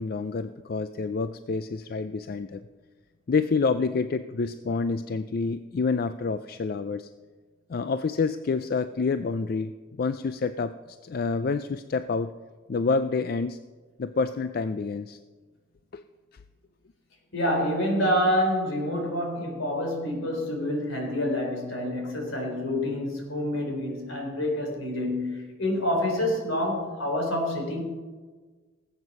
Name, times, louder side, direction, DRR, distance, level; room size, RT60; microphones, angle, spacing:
voice 1, 0.0-2.6 3.3-7.1 7.7-12.3 12.7-13.6 14.0-15.2 15.9-16.0, left 4 dB, 50° left, 0.4 m, -28 dB
voice 2, 17.3-27.8, left 1 dB, 75° left, 3.8 m, -27 dB
19.0 x 8.1 x 5.4 m
head